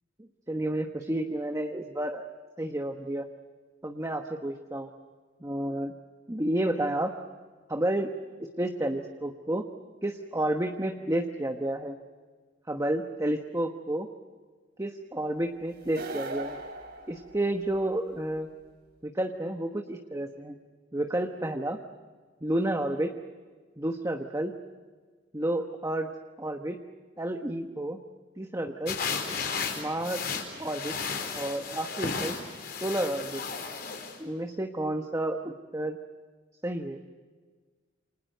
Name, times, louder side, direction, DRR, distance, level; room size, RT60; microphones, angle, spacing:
voice 1, 0.2-2.3 2.6-3.3 3.8-4.9 5.4-5.9 6.3-7.1 7.7-8.1 8.6-9.7 10.0-12.0 12.7-14.1 14.8-16.6 17.1-18.5 19.0-20.6 20.9-21.8 22.4-23.1 23.8-24.5 25.3-26.1 26.4-26.8 27.2-28.0 28.4-29.0 29.8-30.3 30.6-31.0 31.3-32.4 32.8-33.4 34.2-36.0 36.6-37.0, right 1 dB, 15° right, 4 dB, 1.2 m, -30 dB
sound 1, 15.8-17.9, right 2 dB, 60° right, 3.3 m, -39 dB
sound 2, 28.9-34.2, left 5 dB, 55° left, 4.4 m, -34 dB
29.0 x 27.0 x 6.7 m, 1.5 s
head